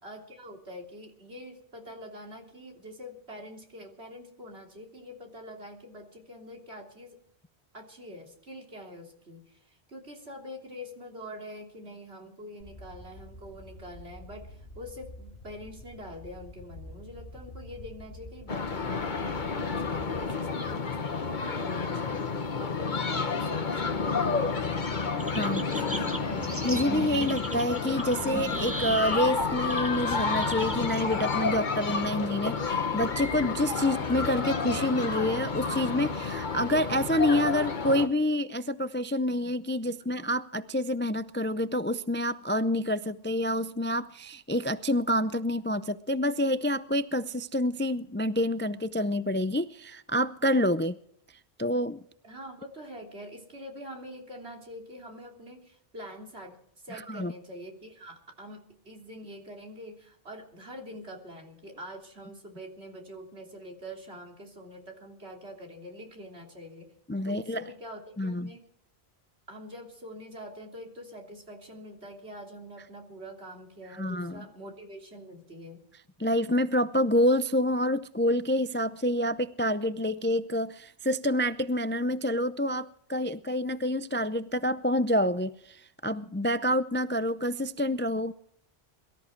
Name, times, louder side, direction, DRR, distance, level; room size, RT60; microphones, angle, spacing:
voice 1, 0.0-7.2 7.7-24.8 25.3-26.0 39.3-39.5 39.8-40.1 52.2-66.9 67.2-68.6 69.5-75.8, equal, 80° right, 1 dB, 3.6 m, -45 dB
sound 1, 12.6-20.4, left 1 dB, 65° left, 3.1 m, -47 dB
sound 2, 18.5-38.1, left 4 dB, 50° left, 1.3 m, -30 dB
voice 2, 25.0-25.6 26.6-51.0 51.6-52.0 56.9-57.3 67.1-67.6 68.2-68.5 73.9-74.5 76.2-88.3, left 1 dB, 20° left, 13 dB, 0.3 m, -28 dB
sound 3, 25.2-32.1, right 1 dB, 15° right, 1.7 m, -37 dB
23.0 x 13.5 x 4.5 m, 0.66 s
omnidirectional pair, 1.1 m